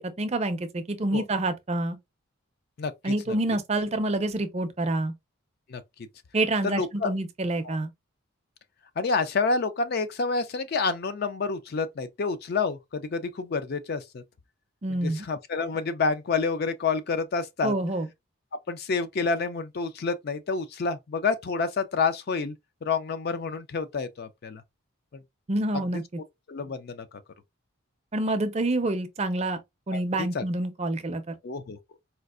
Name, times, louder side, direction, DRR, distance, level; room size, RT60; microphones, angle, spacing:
voice 1, 0.0-2.0 3.0-5.1 6.3-7.9 14.8-15.3 17.6-18.1 25.5-26.0 28.1-29.6 29.9-31.4, right 2 dB, 30° right, 0.4 m, -27 dB
voice 2, 2.8-3.1 5.7-5.8 6.6-7.1 7.7-7.8 9.0-14.2 15.0-17.7 18.7-22.5 22.8-24.6 26.5-27.1 29.9-30.4 31.4-31.8, left 4 dB, 45° left, 0.4 m, -28 dB
4.3 x 2.4 x 2.4 m
head